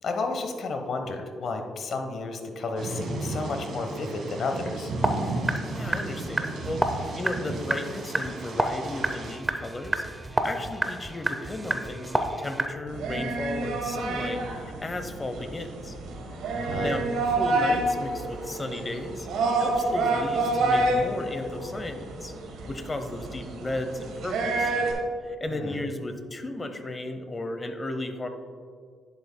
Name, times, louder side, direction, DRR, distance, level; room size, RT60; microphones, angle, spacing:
voice 1, 0.0-4.9 16.5-16.9 25.5-25.8, left 3 dB, 60° left, 5 dB, 1.0 m, -32 dB
Thunder / Rain, 2.8-9.4, right 2 dB, 65° right, 1.5 m, -34 dB
sound 1, 5.0-12.7, right 2 dB, 20° right, 0.6 m, -30 dB
voice 2, 5.6-16.0 16.8-22.3 22.7-24.7 25.2-28.3, left 2 dB, 25° left, 8 dB, 0.8 m, -35 dB
sound 2, 12.9-24.9, right 2 dB, 85° right, 1.3 m, -28 dB
10.5 x 8.3 x 2.2 m, 2.1 s
cardioid pair, 90°, 0 cm